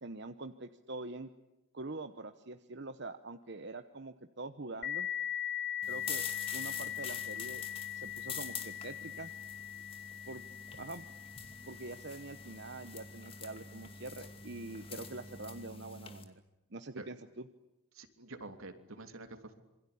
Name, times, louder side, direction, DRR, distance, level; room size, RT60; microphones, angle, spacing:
voice 1, 0.0-1.3 1.7-5.1 5.9-6.3 6.5-7.6 7.9-9.3 10.3-10.4 10.7-11.0 11.7-16.4 16.7-17.5, right 2 dB, 50° right, 9 dB, 1.0 m, -45 dB
sound 1, 4.8-14.1, left 10 dB, 50° left, 1.1 m, -41 dB
sound 2, 5.8-16.2, left 6 dB, 25° left, 2.5 m, -46 dB
voice 2, 17.9-19.5, right 2 dB, 75° right, 7 dB, 3.1 m, -47 dB
27.0 x 24.0 x 8.6 m, 0.94 s
head